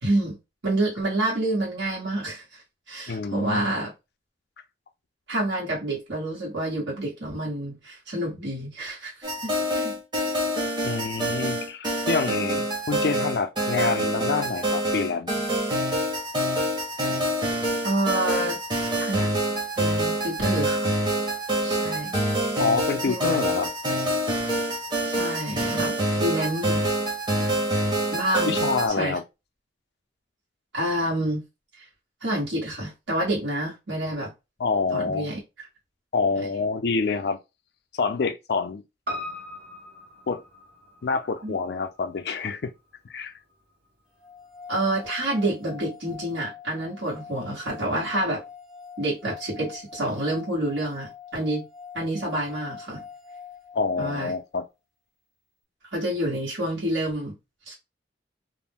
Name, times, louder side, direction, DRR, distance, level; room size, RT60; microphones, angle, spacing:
voice 1, 0.0-0.4 0.6-3.9 5.3-9.1 9.4-9.9 17.8-18.6 19.0-19.3 19.8-20.9 21.6-22.1 23.0-23.4 25.0-26.8 28.1-28.6 28.9-29.2 30.7-31.4 31.8-31.9 32.2-34.3 34.9-35.4 41.4-41.5 44.7-48.4 49.0-51.6 51.9-53.0 54.0-54.3 55.9-57.3 57.7-57.8, right 1 dB, 85° right, 1.2 m, -28 dB
voice 2, 3.1-3.7 10.8-15.3 22.6-23.7 28.5-29.2 34.6-35.3 36.1-37.4 38.0-38.8 40.3-40.4 41.0-42.7 43.1-43.3 53.7-54.6, left 4 dB, 60° left, 0.4 m, -27 dB
sound 1, 9.2-28.9, right 1 dB, 25° right, 0.8 m, -26 dB
Piano, 39.1-43.6 43.9-44.0, left 1 dB, 60° right, 1.1 m, -40 dB
sound 2, 44.2-54.3, left 7 dB, 5° right, 0.5 m, -44 dB
2.5 x 2.1 x 3.4 m
head